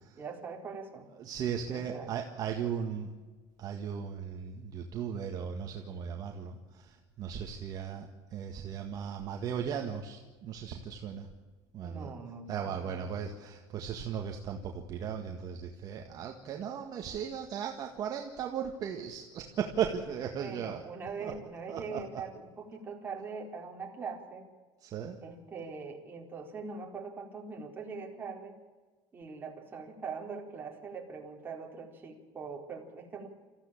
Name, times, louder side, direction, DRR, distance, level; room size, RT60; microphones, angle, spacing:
voice 1, 0.2-1.1 1.7-2.1 11.8-13.2 20.4-24.5 25.2-28.6 29.1-33.3, right 5 dB, 20° right, 0 dB, 4.1 m, -42 dB
voice 2, 1.2-3.1 3.6-11.3 11.7-12.1 12.5-20.8 21.2-21.3 21.7-22.0 24.8-25.2, right 8 dB, 45° right, 3 dB, 1.9 m, -37 dB
25.5 x 15.0 x 8.8 m, 1.3 s
cardioid pair, 140°, 9 cm